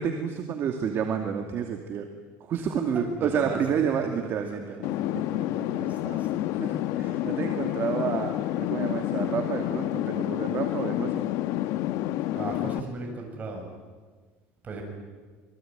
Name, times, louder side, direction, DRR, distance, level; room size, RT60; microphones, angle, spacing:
voice 1, 0.0-2.1 2.5-4.9 5.1-5.9 6.6-11.2, right 7 dB, 45° right, 4 dB, 2.5 m, -30 dB
voice 2, 2.5-5.1 5.5-6.5 12.2-13.6 14.6-14.8, right 2 dB, 25° right, 2 dB, 8.0 m, -38 dB
sound 1, 4.8-12.8, left 14 dB, 70° left, 1.1 m, -29 dB
27.5 x 22.5 x 9.3 m, 1.4 s
cardioid pair, 140°, 6 cm